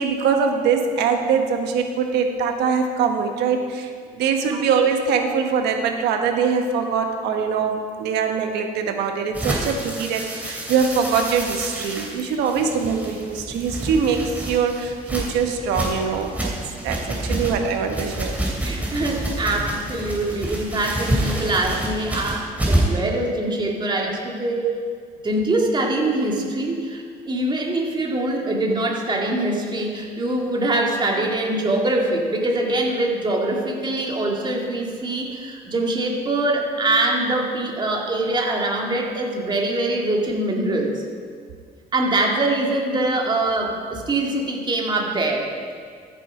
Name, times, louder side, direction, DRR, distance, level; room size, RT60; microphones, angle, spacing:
voice 1, 0.0-16.5 16.8-18.3 24.6-24.7, right 6 dB, 85° right, 4 dB, 1.3 m, -23 dB
sound 1, 9.3-23.0, right 1 dB, 10° right, 3.1 m, -28 dB
voice 2, 18.6-24.7 25.2-41.0 41.9-45.5, right 2 dB, 25° right, 0 dB, 2.0 m, -23 dB
13.5 x 7.7 x 4.9 m, 2.1 s
cardioid pair, 110°, 17 cm